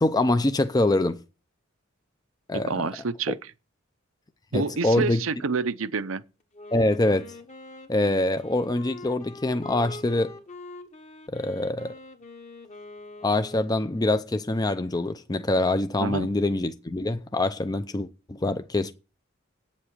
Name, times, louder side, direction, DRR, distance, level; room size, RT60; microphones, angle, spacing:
voice 1, 0.0-1.2 2.5-2.8 4.5-5.2 6.7-7.4 7.9-10.3 11.3-11.9 13.2-18.9, left 2 dB, 20° left, 0.5 m, -24 dB
voice 2, 2.5-3.4 4.5-6.2 16.0-16.3, right 4 dB, 75° right, 0.7 m, -28 dB
Wind instrument woodwind instrument, 6.5-14.3, left 2 dB, 35° left, 1.3 m, -44 dB
8.7 x 7.4 x 8.4 m
head